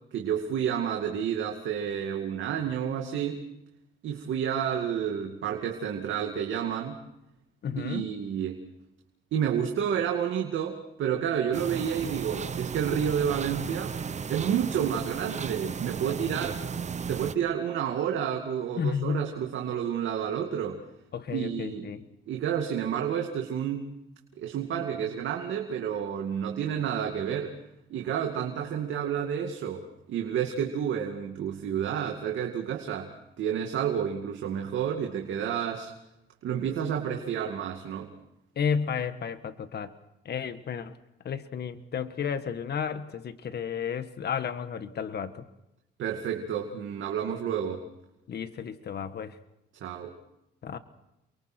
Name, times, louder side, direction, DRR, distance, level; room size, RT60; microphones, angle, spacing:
voice 1, 0.1-3.4 4.0-7.0 7.8-8.6 9.3-13.9 14.3-16.6 17.1-20.8 21.3-21.9 22.3-23.9 24.4-27.5 27.9-35.9 36.4-38.1 46.0-47.8 49.8-50.1, right 8 dB, 75° right, 2 dB, 2.4 m, -30 dB
voice 2, 7.6-8.0 18.8-19.3 21.1-22.0 38.5-39.9 40.2-40.9 41.2-45.4 48.3-49.4 50.6-50.8, left 7 dB, 55° left, 10 dB, 1.5 m, -32 dB
sound 1, 11.5-17.3, right 6 dB, 35° right, 0.9 m, -35 dB
30.0 x 23.5 x 4.5 m, 0.87 s
cardioid pair, 90°, 20 cm